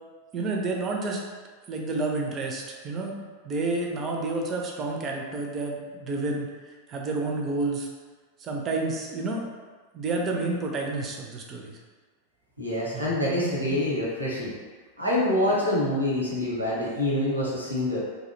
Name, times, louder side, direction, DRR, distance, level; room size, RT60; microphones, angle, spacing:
voice 1, 0.3-1.2 1.7-6.5 6.9-7.9 8.4-9.5 9.9-11.8 12.9-13.8, right 3 dB, 30° right, 0 dB, 0.4 m, -30 dB
voice 2, 12.6-14.5 15.0-18.0, left 1 dB, 85° right, -6 dB, 0.7 m, -26 dB
2.5 x 2.0 x 2.5 m, 1.4 s
figure-of-eight pair, 90°, 0 cm